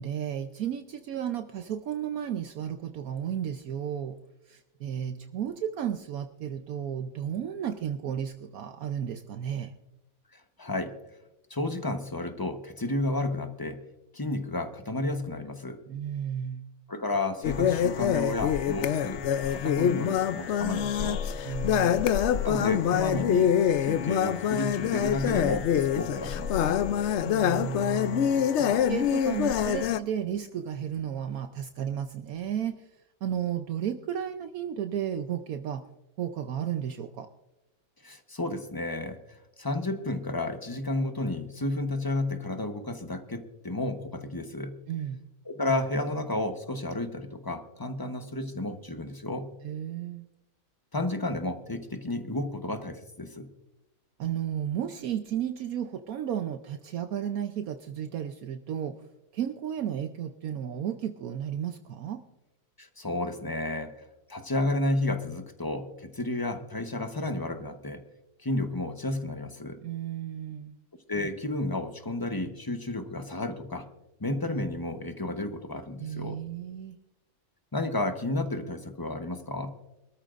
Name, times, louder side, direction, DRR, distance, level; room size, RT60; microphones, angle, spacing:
voice 1, 0.0-4.2 4.5-9.7 15.9-16.6 21.4-22.1 27.2-32.8 33.2-35.9 36.2-37.3 44.9-45.2 49.6-50.3 54.2-59.0 59.3-62.2 69.8-70.7 76.0-77.0, right 9 dB, 70° right, 7 dB, 1.1 m, -33 dB
voice 2, 10.3-10.9 11.5-13.8 14.1-15.8 16.9-21.2 22.4-23.5 23.8-26.8 38.0-44.8 45.5-49.5 50.9-53.5 62.8-63.9 64.3-68.0 68.4-69.8 71.1-73.9 74.2-76.4 77.7-79.7, left 2 dB, 20° left, 7 dB, 0.8 m, -32 dB
sound 1, 17.4-30.0, left 9 dB, 65° left, 0.7 m, -25 dB
24.5 x 13.5 x 2.5 m, 0.94 s
omnidirectional pair, 1.6 m